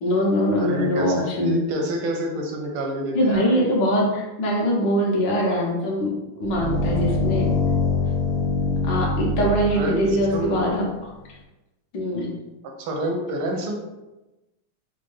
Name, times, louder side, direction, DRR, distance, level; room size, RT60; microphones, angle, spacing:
voice 1, 0.0-1.6 3.1-6.1 6.4-7.5 8.8-10.9 11.9-12.3, equal, 65° left, -3 dB, 1.3 m, -22 dB
voice 2, 0.6-3.6 9.7-10.6 12.6-13.7, right 1 dB, 80° right, 2 dB, 1.4 m, -28 dB
sound 1, 6.4-10.8, left 2 dB, 90° left, 1.6 m, -24 dB
4.4 x 2.2 x 3.1 m, 1.0 s
omnidirectional pair, 2.4 m